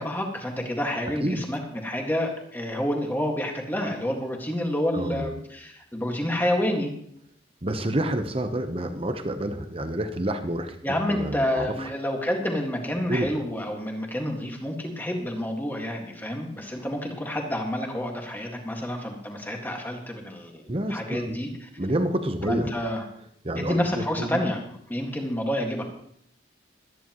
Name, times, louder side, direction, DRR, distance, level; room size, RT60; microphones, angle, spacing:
voice 1, 0.0-6.9 10.8-20.6 20.9-21.7 22.5-23.1 23.6-24.6 24.9-25.8, left 1 dB, 10° left, 1 dB, 1.8 m, -29 dB
voice 2, 4.9-5.3 7.6-10.8 11.1-11.9 13.1-13.3 20.7-21.4 21.8-22.7 23.4-24.4, right 1 dB, 30° right, 8 dB, 0.9 m, -28 dB
22.5 x 10.0 x 3.1 m, 0.69 s
head